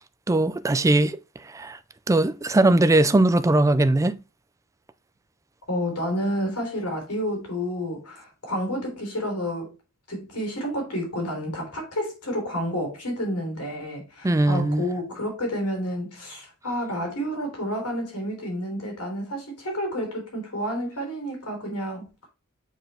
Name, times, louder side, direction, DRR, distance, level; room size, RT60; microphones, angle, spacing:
voice 1, 0.3-1.2 1.5-1.8 2.1-4.2 14.2-14.8, right 2 dB, 15° right, 0.4 m, -20 dB
voice 2, 5.7-9.7 10.1-22.3, equal, 90° left, 3.5 m, -30 dB
7.8 x 4.6 x 3.3 m
head